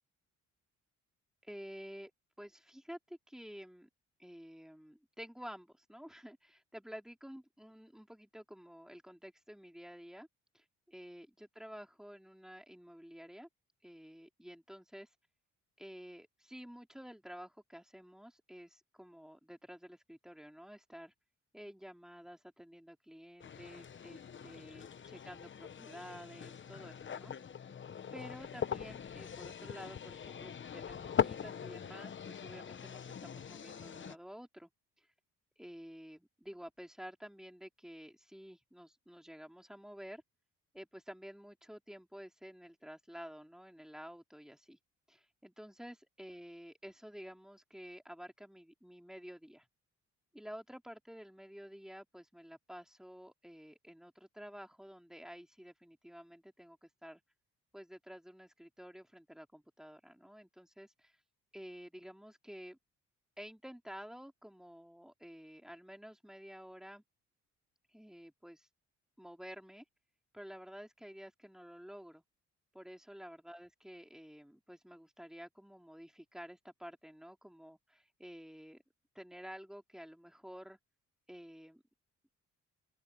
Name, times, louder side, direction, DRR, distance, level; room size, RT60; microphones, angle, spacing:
voice 1, 1.4-2.1 2.4-3.9 4.2-10.3 10.5-13.5 13.8-15.1 15.8-21.1 21.5-27.3 28.1-34.7 35.0-35.1 35.6-40.2 40.7-44.8 45.1-49.7 50.3-57.2 57.7-61.1 61.5-62.8 63.4-67.0 67.9-68.7 69.2-69.8 70.3-72.2 72.7-78.8 79.1-80.8 81.3-81.8, equal, ahead, 3.0 m, -51 dB
sound 1, 23.4-34.1, left 8 dB, 40° left, 1.0 m, -41 dB
open air
cardioid pair, 90°, 30 cm